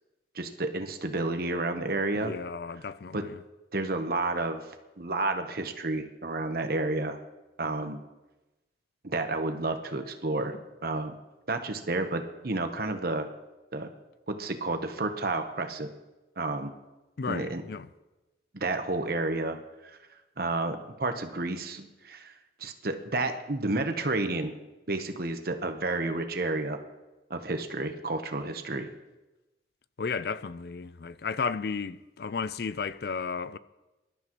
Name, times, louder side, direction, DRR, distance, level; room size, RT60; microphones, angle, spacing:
voice 1, 0.3-2.3 3.1-3.2 3.7-4.6 5.0-7.2 7.6-8.0 9.0-11.1 11.5-13.3 13.7-13.9 14.3-15.9 16.4-16.7 17.3-17.6 18.5-19.6 19.8-20.0 20.4-22.3 22.6-24.5 24.9-26.8 27.3-28.9, right 2 dB, 60° right, 1.1 m, -31 dB
voice 2, 2.1-3.4 17.2-17.9 30.0-33.6, left 5 dB, 60° left, 0.5 m, -33 dB
23.5 x 12.0 x 3.1 m
head